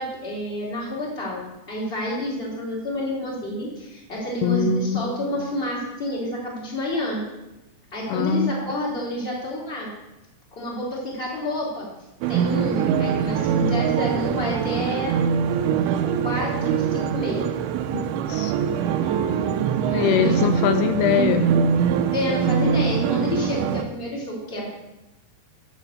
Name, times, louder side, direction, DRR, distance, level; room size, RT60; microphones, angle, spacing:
voice 1, 0.0-1.4 1.7-7.2 7.9-9.9 10.5-11.9 12.3-15.1 16.2-17.5 20.0-20.4 22.1-24.6, left 1 dB, 15° left, -5 dB, 2.8 m, -29 dB
voice 2, 4.4-5.2 8.1-8.5 17.9-18.5 19.8-21.5, left 8 dB, 85° left, 8 dB, 2.5 m, -23 dB
sound 1, 12.2-23.8, right 7 dB, 80° right, 2.5 m, -23 dB
8.5 x 7.3 x 6.7 m, 0.97 s
omnidirectional pair, 4.7 m